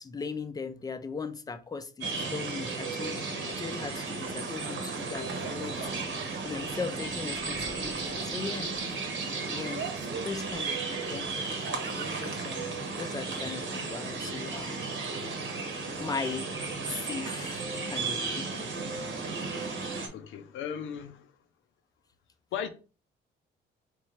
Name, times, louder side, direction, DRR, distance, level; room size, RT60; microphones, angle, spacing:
voice 1, 0.0-5.8 6.4-8.7 9.5-9.9 10.2-11.3 11.9-14.8 16.0-16.5 16.8-18.7, left 4 dB, 20° left, 0.4 m, -38 dB
sound 1, 2.0-20.1, right 4 dB, 75° right, 1.2 m, -34 dB
sound 2, 4.2-13.8, right 7 dB, 55° right, 0.5 m, -45 dB
voice 2, 20.1-21.4 22.5-22.7, left 8 dB, 80° left, 0.5 m, -36 dB
3.6 x 3.0 x 3.2 m
cardioid pair, 90°, 20 cm